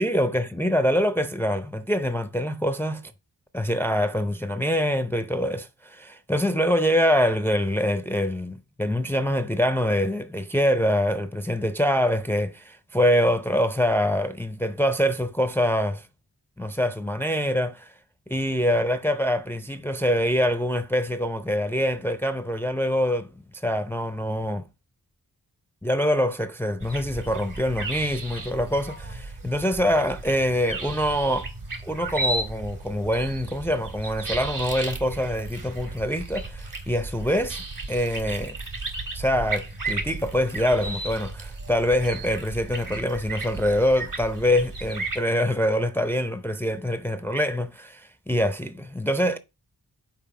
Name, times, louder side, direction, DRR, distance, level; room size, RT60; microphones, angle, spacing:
voice 1, 0.0-3.0 3.5-16.1 16.6-17.9 18.3-23.3 23.6-24.7 25.8-31.5 31.8-38.6 39.1-49.4, equal, 5° left, 0.5 m, -25 dB
sound 1, 26.8-45.2, right 2 dB, 50° right, 1.8 m, -34 dB
5.6 x 4.5 x 5.8 m
wide cardioid pair, 75°, 41 cm